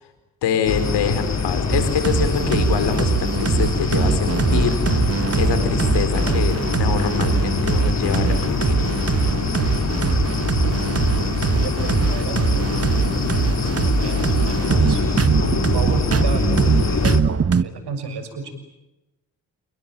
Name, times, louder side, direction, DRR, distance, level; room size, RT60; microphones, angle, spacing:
voice 1, 0.4-8.9, left 6 dB, 75° left, 9 dB, 4.8 m, -25 dB
sound 1, 0.7-17.2, left 5 dB, 40° left, 2.6 m, -24 dB
sound 2, 1.7-17.6, right 6 dB, 35° right, 1.4 m, -22 dB
voice 2, 11.1-15.4 15.7-18.5, right 5 dB, 70° right, 9 dB, 6.8 m, -34 dB
29.0 x 22.0 x 9.0 m, 0.97 s
supercardioid pair, 50°, 41 cm